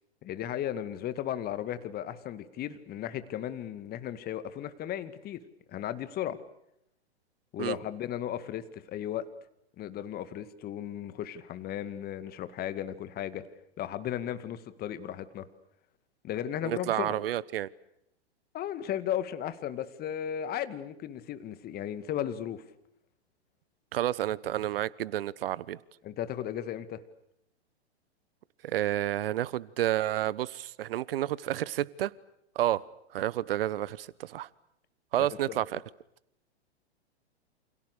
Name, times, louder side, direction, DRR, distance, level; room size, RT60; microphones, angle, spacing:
voice 1, 0.2-5.4 5.7-6.4 7.5-9.3 9.8-13.4 13.8-15.5 16.2-17.2 18.5-22.6 26.0-27.0 35.1-35.6, left 10 dB, 30° left, 2.1 m, -35 dB
voice 2, 16.6-17.7 23.9-25.8 28.6-32.1 32.5-32.8 33.1-34.5 35.1-35.8, right 13 dB, 60° right, 1.2 m, -30 dB
29.0 x 27.0 x 6.7 m
figure-of-eight pair, 105°, 33 cm